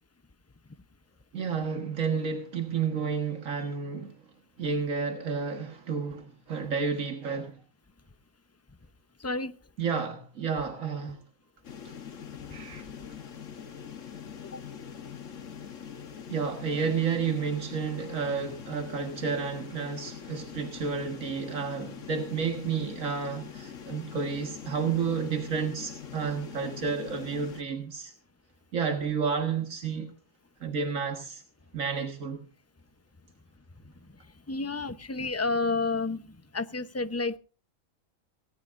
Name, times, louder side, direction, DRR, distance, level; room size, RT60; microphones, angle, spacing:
voice 1, 1.3-4.2 4.6-7.6 9.8-11.2 12.5-12.9 16.3-28.1 28.7-30.1 30.6-31.4 31.7-32.4, right 5 dB, 85° right, 2.0 m, -31 dB
voice 2, 9.2-9.6 14.5-14.6 34.1-37.4, left 3 dB, 15° left, 0.7 m, -31 dB
sound 1, 11.6-27.6, left 7 dB, 75° left, 1.7 m, -43 dB
18.5 x 18.0 x 2.6 m
omnidirectional pair, 1.3 m